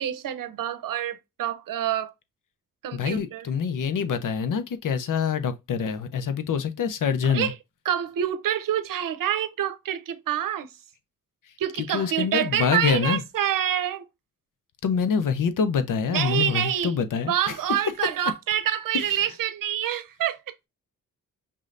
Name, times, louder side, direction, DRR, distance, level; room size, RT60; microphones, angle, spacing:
voice 1, 0.0-2.1 2.8-3.5 7.3-7.5 7.8-10.7 11.6-14.0 16.1-16.9 17.3-20.4, right 10 dB, 85° right, 0.7 m, -27 dB
voice 2, 2.9-7.5 11.9-13.2 14.8-17.5 19.2-19.3, left 6 dB, 75° left, 0.8 m, -25 dB
5.4 x 3.2 x 2.5 m
cardioid pair, 75°, 32 cm